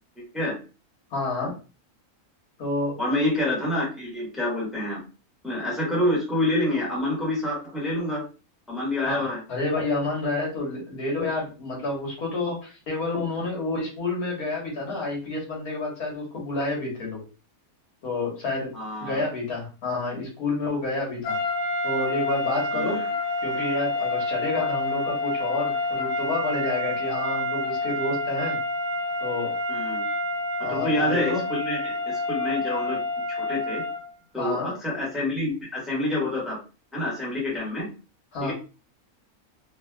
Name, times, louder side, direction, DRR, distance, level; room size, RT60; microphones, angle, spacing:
voice 1, 0.2-0.5 3.0-5.0 5.4-8.2 8.7-9.4 18.7-19.2 22.7-23.1 24.6-24.7 29.7-30.0 30.7-33.0 33.3-33.8 34.3-36.6 36.9-37.9 38.4-38.5, left 1 dB, ahead, -4 dB, 1.1 m, -27 dB
voice 2, 1.1-1.5 2.6-3.0 9.0-9.2 9.5-17.2 18.0-18.7 19.0-21.4 21.8-23.0 23.4-28.6 29.2-29.5 30.6-31.4 34.4-34.7 38.3-38.5, left 2 dB, 85° left, -2 dB, 1.7 m, -29 dB
sound 1, 21.2-34.1, left 2 dB, 70° left, 1.3 m, -28 dB
3.2 x 2.7 x 2.2 m, 0.34 s
omnidirectional pair, 1.5 m